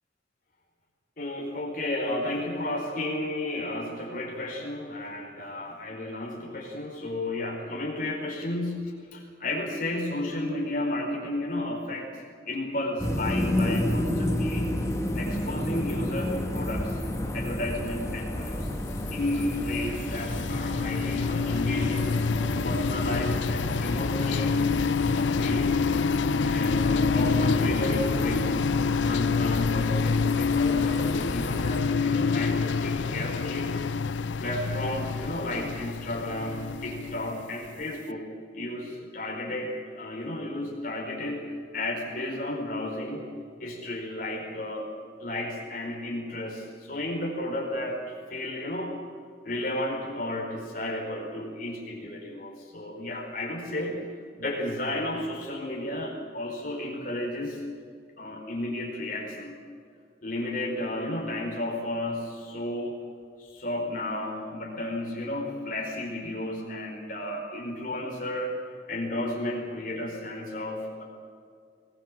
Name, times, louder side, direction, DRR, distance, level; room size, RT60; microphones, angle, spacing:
voice 1, 1.2-12.1 12.4-14.8 15.1-17.0 17.3-18.9 19.1-22.1 22.6-24.6 25.2-25.8 26.4-28.6 29.0-33.7 34.4-41.4 41.7-43.2 43.6-44.9 45.2-48.9 49.4-54.0 54.4-57.6 58.2-59.6 60.2-63.0 63.4-68.6 68.9-71.0, left 1 dB, 50° left, -1 dB, 4.7 m, -33 dB
sound 1, 13.0-31.8, left 1 dB, 15° left, 2.8 m, -31 dB
sound 2, 18.7-37.7, left 5 dB, 85° left, 0.6 m, -27 dB
22.0 x 21.0 x 7.7 m, 2.2 s
head